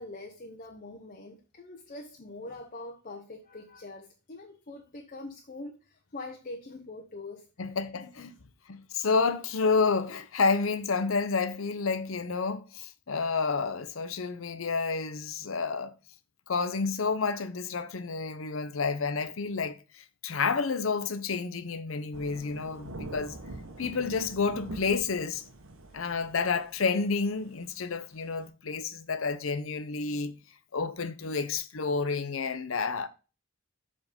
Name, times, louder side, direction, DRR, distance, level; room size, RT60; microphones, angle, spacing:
voice 1, 0.0-7.5 7.9-8.4, left 2 dB, 40° left, 0.8 m, -44 dB
voice 2, 7.6-8.3 8.7-15.9 16.5-23.4 23.8-25.4 25.9-30.3 30.7-33.1, left 4 dB, 75° left, 0.7 m, -30 dB
Thunder / Rain, 22.1-28.5, right 2 dB, 90° right, 1.2 m, -44 dB
7.2 x 3.7 x 5.2 m
head